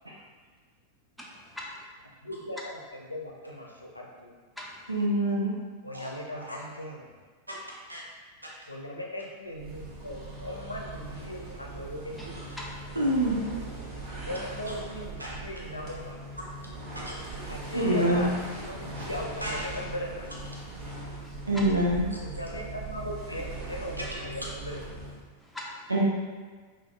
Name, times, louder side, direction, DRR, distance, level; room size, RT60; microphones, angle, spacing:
voice 1, 1.2-1.8 4.6-4.9 12.2-12.3 12.6-13.0 21.2-21.7 25.4-25.9, left 1 dB, ahead, -3 dB, 0.5 m, -42 dB
voice 2, 2.2-4.3 5.8-7.1 8.7-12.6 14.3-16.2 17.5-18.3 18.8-20.3 22.2-24.9, equal, 85° left, -2 dB, 0.6 m, -38 dB
voice 3, 4.9-5.5 6.4-6.6 7.5-7.6 7.9-8.0 13.0-13.5 16.4-16.5 17.1-17.2 17.7-18.3 19.4-19.6 21.5-22.2 25.9-26.0, right 1 dB, 85° right, -3 dB, 0.5 m, -26 dB
sound 1, 9.5-25.3, right 2 dB, 40° right, 1.2 m, -40 dB
5.6 x 2.5 x 2.3 m, 1.5 s
figure-of-eight pair, 90°, 0 cm